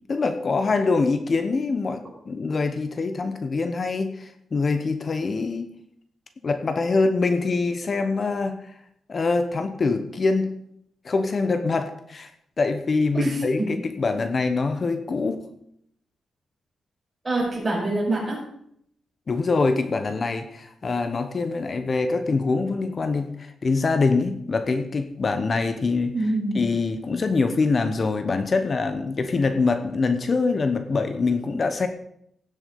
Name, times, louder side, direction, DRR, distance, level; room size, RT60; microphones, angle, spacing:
voice 1, 0.1-5.7 6.4-8.7 9.1-10.5 11.0-12.3 12.6-15.5 19.3-31.9, left 3 dB, 35° left, 9 dB, 1.0 m, -24 dB
voice 2, 13.1-13.7 17.2-18.4 26.1-26.6, right 2 dB, 20° right, -5 dB, 5.7 m, -25 dB
16.5 x 7.2 x 5.4 m, 0.70 s
wide cardioid pair, 150°, 0 cm